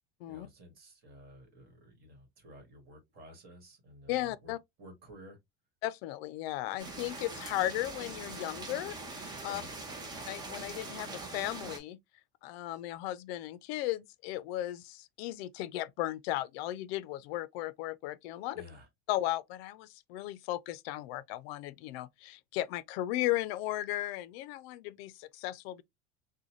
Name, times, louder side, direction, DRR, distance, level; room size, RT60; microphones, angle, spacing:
voice 1, 0.2-5.4 9.5-9.8 18.5-18.9, equal, 30° right, 1.5 m, -53 dB
voice 2, 4.1-4.6 5.8-9.6 10.3-12.0 12.4-18.6 19.1-25.8, left 15 dB, 85° left, 0.5 m, -36 dB
sound 1, 6.8-11.8, right 3 dB, 15° right, 0.7 m, -42 dB
3.9 x 2.2 x 3.0 m
cardioid pair, 175°, 30 cm